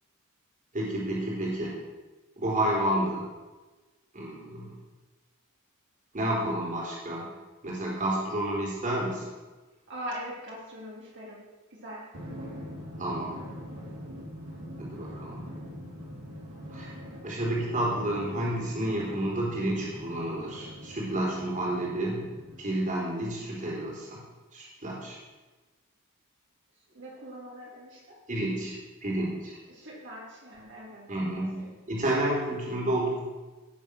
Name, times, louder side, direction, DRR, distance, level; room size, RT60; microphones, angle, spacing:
voice 1, 0.7-1.7 2.4-3.2 4.1-4.7 6.1-7.3 7.6-9.2 13.0-13.4 14.8-15.4 16.7-16.9 17.2-22.3 22.6-24.2 24.5-25.2 28.3-29.6 31.1-33.2, right 1 dB, 40° right, -4 dB, 3.9 m, -30 dB
voice 2, 9.9-12.1 26.9-28.2 29.7-31.7, equal, 60° right, -5 dB, 3.6 m, -42 dB
Drum, 12.1-23.2, equal, 85° right, 4.8 m, -43 dB
17.5 x 7.2 x 6.4 m, 1.2 s
head